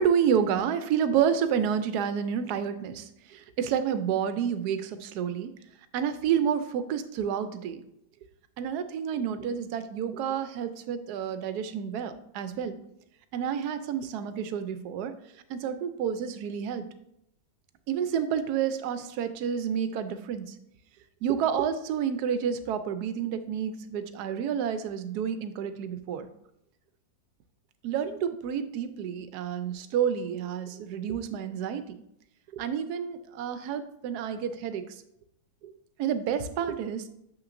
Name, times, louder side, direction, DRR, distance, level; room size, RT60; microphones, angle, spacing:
voice 1, 0.0-5.5 5.9-7.8 8.6-12.8 13.3-15.1 15.5-16.8 17.9-20.5 21.2-26.3 27.8-31.9 32.5-34.8 35.6-35.7 36.0-37.1, right 8 dB, 75° right, 11 dB, 1.1 m, -29 dB
7.3 x 5.8 x 2.6 m, 0.78 s
omnidirectional pair, 1.8 m